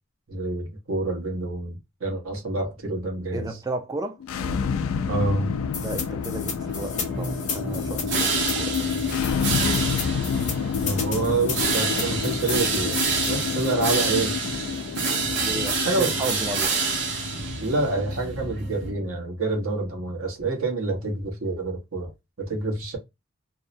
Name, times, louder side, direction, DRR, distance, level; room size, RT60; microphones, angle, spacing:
voice 1, 0.3-3.6 5.1-5.5 10.8-13.0 13.2-14.4 15.7-16.4 17.6-22.1 22.4-23.0, right 2 dB, 75° right, 1.0 m, -27 dB
voice 2, 3.3-4.2 5.8-9.0 15.4-16.8, right 2 dB, 15° right, 0.3 m, -34 dB
sound 1, 4.2-19.2, left 6 dB, 75° left, 0.4 m, -29 dB
sound 2, 5.7-13.7, left 6 dB, 35° left, 0.6 m, -35 dB
sound 3, 6.6-18.9, right 4 dB, 50° right, 0.8 m, -28 dB
2.7 x 2.0 x 2.6 m
head